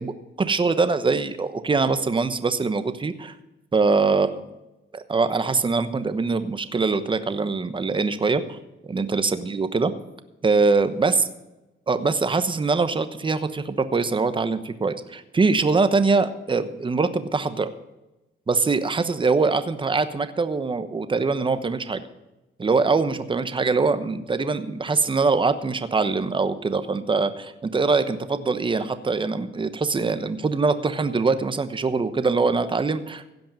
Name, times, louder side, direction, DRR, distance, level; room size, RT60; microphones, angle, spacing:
voice 1, 0.0-3.3 3.7-4.4 4.9-8.6 8.8-9.9 10.4-11.2 11.9-17.7 18.5-22.1 22.6-33.3, right 4 dB, 25° right, 11 dB, 1.0 m, -23 dB
16.0 x 5.4 x 8.9 m, 1.0 s
cardioid pair, 90°, 20 cm